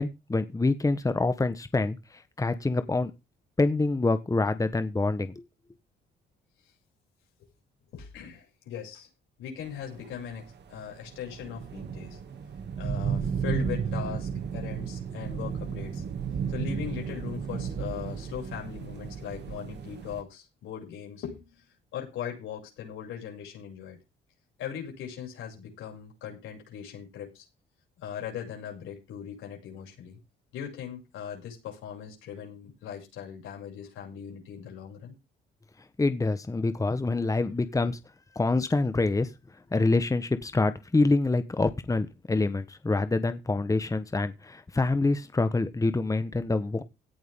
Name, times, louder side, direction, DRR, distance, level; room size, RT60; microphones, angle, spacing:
voice 1, 0.0-2.0 2.4-3.1 3.6-5.4 36.0-38.0 38.3-39.3 39.7-46.8, left 3 dB, 15° left, 1.2 m, -26 dB
voice 2, 7.9-9.1 9.4-12.2 12.8-16.0 16.5-21.7 21.9-24.0 24.6-27.5 28.0-30.2 30.5-35.1, left 8 dB, 90° left, 7.2 m, -39 dB
sound 1, 9.7-20.2, right 6 dB, 60° right, 2.5 m, -33 dB
17.0 x 10.5 x 3.7 m
cardioid pair, 90°, 20 cm